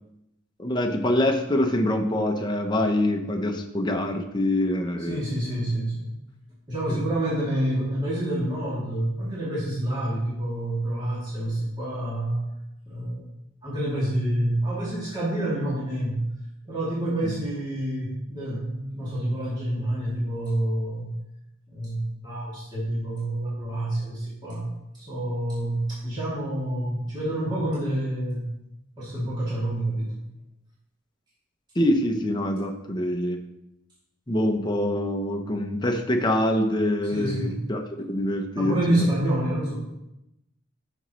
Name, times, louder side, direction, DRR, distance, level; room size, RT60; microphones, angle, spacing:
voice 1, 0.6-5.2 6.9-7.0 17.2-17.3 31.8-33.4 34.3-39.1, left 1 dB, 20° left, 4 dB, 0.7 m, -25 dB
voice 2, 5.1-6.1 6.7-12.4 12.9-13.3 13.6-16.2 16.7-21.1 21.7-24.7 25.1-28.4 29.0-30.1 37.1-37.6 38.6-39.8, right 1 dB, 20° right, -8 dB, 2.6 m, -28 dB
9.7 x 6.2 x 3.1 m, 0.87 s
head